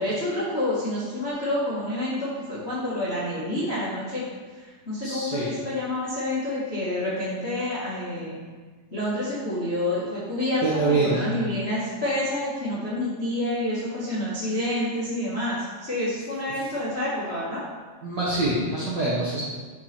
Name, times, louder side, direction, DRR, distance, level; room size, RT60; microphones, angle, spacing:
voice 1, 0.0-4.2 4.6-8.4 8.9-17.6, left 1 dB, 35° left, -9 dB, 1.0 m, -28 dB
voice 2, 5.0-5.5 10.6-11.3 18.0-19.4, right 2 dB, 60° right, -8 dB, 1.1 m, -25 dB
10.5 x 4.7 x 4.4 m, 1.4 s
omnidirectional pair, 4.2 m